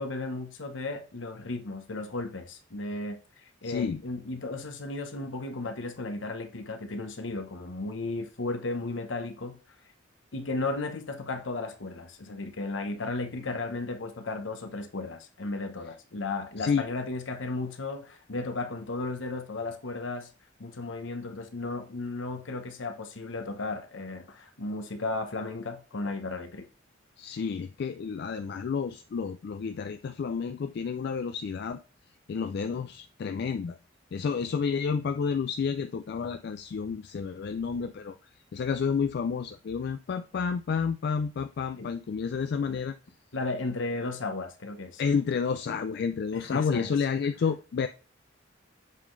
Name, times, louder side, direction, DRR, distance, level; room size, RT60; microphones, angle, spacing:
voice 1, 0.0-9.6 10.3-20.3 20.6-26.7 41.8-41.9 42.7-42.8 43.3-45.0 46.3-47.0, left 3 dB, 75° left, 0.9 m, -35 dB
voice 2, 3.6-4.0 16.6-16.9 27.2-31.8 32.3-33.8 34.1-38.2 38.5-42.9 45.0-47.9, left 6 dB, 55° left, 0.3 m, -30 dB
7.4 x 3.8 x 3.8 m
head